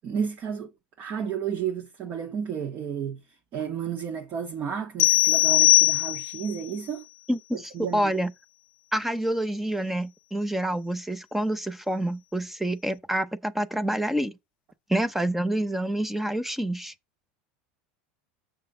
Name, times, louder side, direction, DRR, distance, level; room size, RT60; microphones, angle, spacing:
voice 1, 0.0-0.7 1.0-3.2 3.5-7.1 7.5-8.1, right 7 dB, 40° right, 1.7 m, -32 dB
sound 1, 5.0-6.5, left 19 dB, 75° left, 0.5 m, -20 dB
voice 2, 7.3-8.3 8.9-14.3 14.9-16.9, right 1 dB, 5° right, 0.7 m, -27 dB
6.6 x 6.5 x 3.8 m
supercardioid pair, 125°, 5 cm